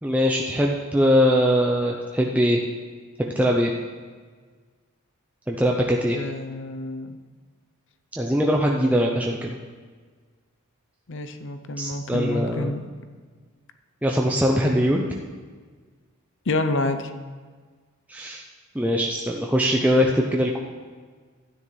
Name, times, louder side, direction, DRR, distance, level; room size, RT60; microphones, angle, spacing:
voice 1, 0.0-2.6 3.2-3.7 5.5-6.2 8.2-9.6 11.8-12.7 14.0-15.1 18.1-18.4 18.7-20.6, equal, 5° right, -1 dB, 0.5 m, -21 dB
voice 2, 6.1-7.2 11.1-12.8 16.5-17.1, left 2 dB, 60° left, 9 dB, 0.6 m, -28 dB
12.5 x 9.6 x 3.2 m, 1.5 s
head